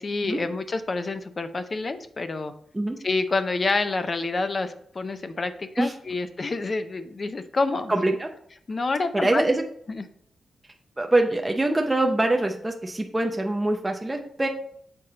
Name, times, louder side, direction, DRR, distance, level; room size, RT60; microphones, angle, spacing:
voice 1, 0.0-2.5 3.0-7.9 8.7-9.5 9.9-10.1, left 3 dB, 40° left, 10 dB, 0.5 m, -28 dB
voice 2, 7.9-8.3 9.1-9.6 11.0-14.5, right 2 dB, 15° right, 3 dB, 0.6 m, -24 dB
6.6 x 4.2 x 3.8 m, 0.66 s
cardioid pair, 105°, 0 cm